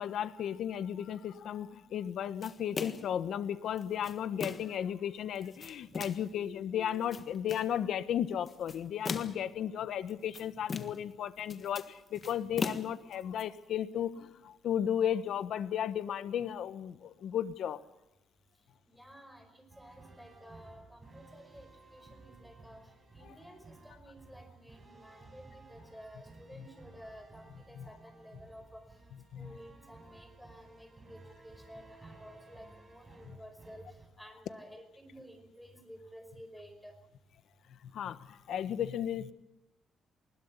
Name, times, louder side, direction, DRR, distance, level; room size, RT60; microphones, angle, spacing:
voice 1, 0.0-17.8 23.3-23.4 26.6-26.7 27.8-27.9 29.3-29.6 33.2-33.4 37.7-39.3, left 9 dB, 70° left, 13 dB, 1.3 m, -35 dB
sound 1, 2.4-3.2 3.8-4.8 5.4-6.3 6.9-7.7 8.5-9.5 10.1-11.1 11.4-13.4, left 4 dB, 35° left, 1.5 m, -40 dB
voice 2, 18.9-29.0 29.3-37.0, equal, ahead, 7 dB, 5.1 m, -53 dB
sound 2, 19.7-34.1, right 3 dB, 25° right, 6.0 m, -56 dB
20.5 x 20.5 x 8.3 m, 0.91 s
cardioid pair, 120°, 0 cm